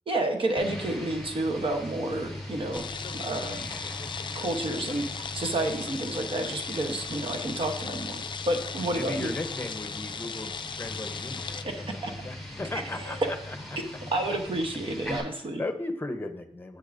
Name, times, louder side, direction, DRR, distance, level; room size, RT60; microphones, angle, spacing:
voice 1, 0.1-2.8 3.1-3.6 4.3-8.2 8.5-9.3 11.5-12.3 12.7-13.3 14.1-15.6, right 1 dB, 50° right, 3 dB, 1.0 m, -30 dB
sound 1, 0.6-15.2, left 1 dB, ahead, 3.8 m, -40 dB
sound 2, 2.7-11.6, left 6 dB, 45° left, 0.4 m, -37 dB
voice 2, 8.9-11.5 11.8-13.6 15.6-16.8, left 2 dB, 20° left, 7 dB, 0.9 m, -36 dB
10.0 x 8.2 x 2.6 m, 0.73 s
wide cardioid pair, 95°, 11 cm